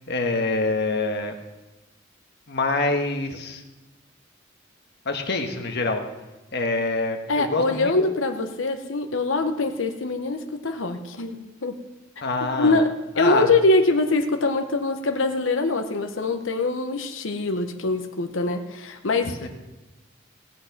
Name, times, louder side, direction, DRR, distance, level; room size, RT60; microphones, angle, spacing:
voice 1, 0.1-1.3 2.5-3.6 5.0-6.0 6.5-7.9 12.2-12.8 13.2-13.5 19.2-19.5, left 3 dB, 60° left, 4 dB, 1.5 m, -25 dB
voice 2, 7.3-11.8 12.6-12.9 13.2-19.5, left 3 dB, 80° left, 6 dB, 1.0 m, -23 dB
17.5 x 7.7 x 5.9 m, 1.0 s
head